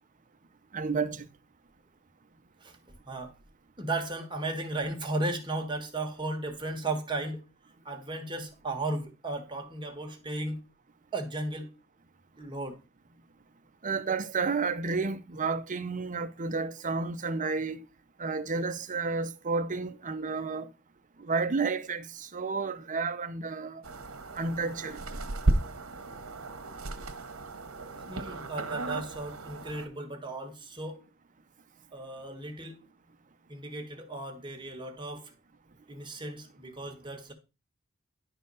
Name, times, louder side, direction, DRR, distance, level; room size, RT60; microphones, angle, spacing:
voice 1, 0.7-1.3 13.8-17.8 18.2-20.7 21.2-23.8 24.3-25.1, right 4 dB, 35° right, 0.7 m, -31 dB
voice 2, 2.6-3.3 3.8-7.4 7.8-10.6 11.1-11.7 12.4-12.8 28.1-31.0 31.9-32.9 33.5-35.3 35.9-37.3, right 2 dB, 20° right, 1.5 m, -35 dB
sound 1, 23.8-29.9, right 2 dB, 70° right, 1.1 m, -34 dB
10.5 x 4.0 x 5.5 m
head